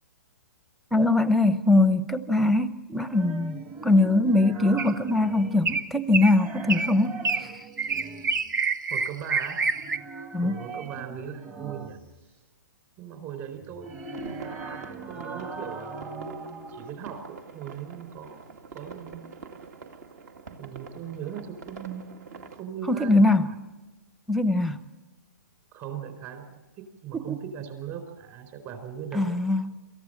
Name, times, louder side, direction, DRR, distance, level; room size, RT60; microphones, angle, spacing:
voice 1, 0.9-7.7 10.3-10.6 22.9-23.5 24.3-24.8 27.1-27.4 29.1-29.7, left 2 dB, ahead, 13 dB, 0.8 m, -22 dB
sound 1, 3.0-5.9 6.2-8.5 9.6-12.2 13.6-16.9, right 4 dB, 20° right, 1.3 m, -41 dB
sound 2, 4.8-5.1 5.6-5.9 6.1-6.4 6.7-6.9 7.2-7.5 7.8-10.0, right 4 dB, 75° right, 1.3 m, -27 dB
voice 2, 8.9-9.7 10.4-12.0 13.0-14.4 15.1-16.2 16.7-18.4 18.7-19.3 20.6-22.1 22.5-23.3 25.7-26.4 27.0-29.4, right 8 dB, 35° right, 6 dB, 4.4 m, -39 dB
sound 3, 14.0-22.6, right 5 dB, 60° right, 2.1 m, -45 dB
27.0 x 14.5 x 7.7 m, 1.1 s
hypercardioid pair, 135°, 10 cm